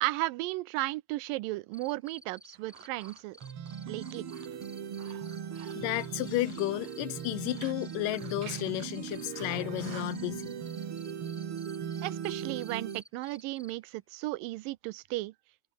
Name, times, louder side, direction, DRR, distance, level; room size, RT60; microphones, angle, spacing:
voice 1, 0.0-3.4 3.9-4.3 12.0-15.3, right 19 dB, 80° right, 2.3 m, -34 dB
Cricket, 1.7-13.7, equal, 5° left, 3.6 m, -54 dB
sound 1, 2.5-10.3, right 9 dB, 65° right, 3.3 m, -52 dB
sound 2, 3.4-13.0, right 8 dB, 45° right, 2.3 m, -39 dB
voice 2, 5.8-10.6, left 19 dB, 80° left, 2.2 m, -33 dB
omnidirectional pair, 4.0 m